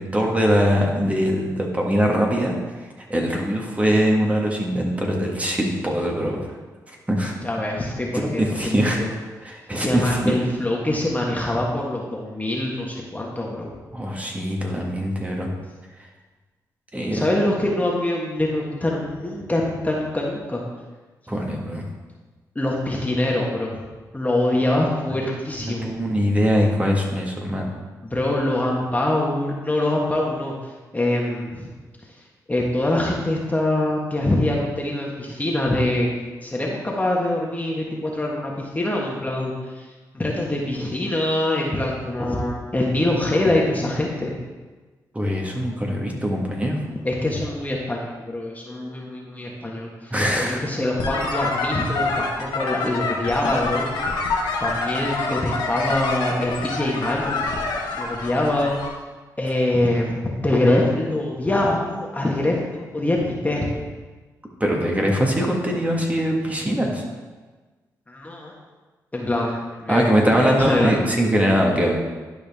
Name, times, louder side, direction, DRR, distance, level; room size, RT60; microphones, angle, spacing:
voice 1, 0.0-6.5 6.9-7.3 8.1-9.0 9.4-10.3 13.9-15.5 16.9-17.3 21.3-21.9 25.6-27.7 45.1-46.8 50.1-50.6 64.6-67.0 69.9-72.0, equal, 20° right, 0 dB, 1.8 m, -22 dB
voice 2, 7.4-8.7 9.0-9.1 9.8-13.7 17.1-20.6 22.5-23.8 24.1-25.9 28.0-31.7 32.0-32.2 32.5-36.1 36.4-39.9 40.1-44.3 47.0-57.6 57.9-58.9 59.4-63.7 68.1-68.5 69.1-70.9, left 1 dB, 20° left, -3 dB, 1.6 m, -24 dB
sound 1, 51.0-58.9, left 3 dB, 85° left, 1.1 m, -27 dB
11.0 x 5.0 x 3.6 m, 1.3 s
supercardioid pair, 55°, 7 cm